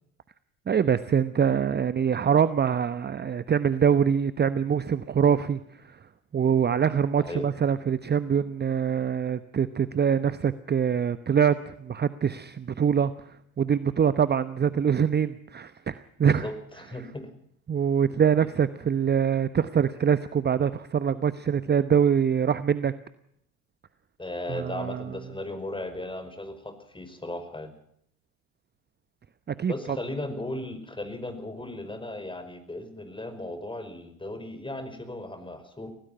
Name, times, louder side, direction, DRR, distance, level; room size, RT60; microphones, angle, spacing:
voice 1, 0.7-6.0 6.3-16.5 17.7-22.9 24.5-25.1 29.5-30.0, right 7 dB, 25° right, 14 dB, 1.0 m, -24 dB
voice 2, 16.2-17.3 24.2-27.7 29.7-35.9, left 1 dB, 10° left, 9 dB, 5.2 m, -36 dB
25.5 x 17.5 x 5.7 m, 0.70 s
hypercardioid pair, 65°, 42 cm